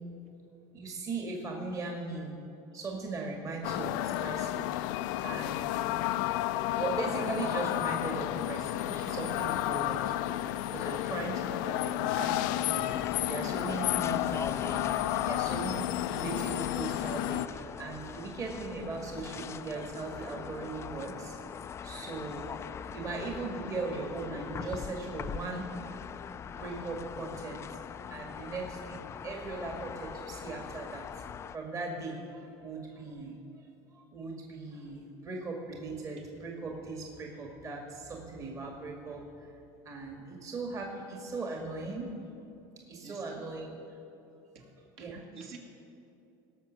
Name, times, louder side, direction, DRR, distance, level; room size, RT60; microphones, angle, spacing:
voice 1, 0.7-2.4 2.7-4.9 5.2-5.7 6.7-10.4 10.7-14.8 15.2-21.4 21.8-25.7 26.4-27.6 28.1-31.0 31.5-33.4 33.9-39.5 39.9-42.1 42.9-43.8 45.0-45.2, right 3 dB, 35° right, 0 dB, 1.9 m, -39 dB
sound 1, 3.6-17.5, left 14 dB, 90° left, 0.4 m, -31 dB
sound 2, 12.9-31.6, left 7 dB, 25° left, 0.3 m, -42 dB
voice 2, 43.0-43.5 44.5-44.7 45.0-45.6, right 5 dB, 65° right, 0 dB, 2.4 m, -50 dB
18.0 x 6.0 x 7.3 m, 2.8 s
cardioid pair, 130°, 10 cm